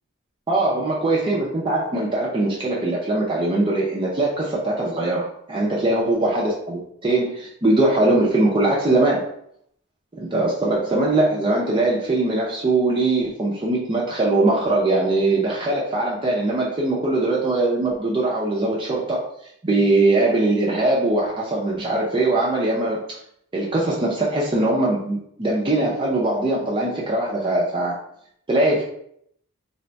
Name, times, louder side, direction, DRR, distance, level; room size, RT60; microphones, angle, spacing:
voice 1, 0.5-9.2 10.2-19.3 19.6-23.0 23.5-28.0 28.5-28.8, right 2 dB, 20° right, -4 dB, 0.5 m, -21 dB
3.4 x 2.2 x 3.9 m, 0.70 s
head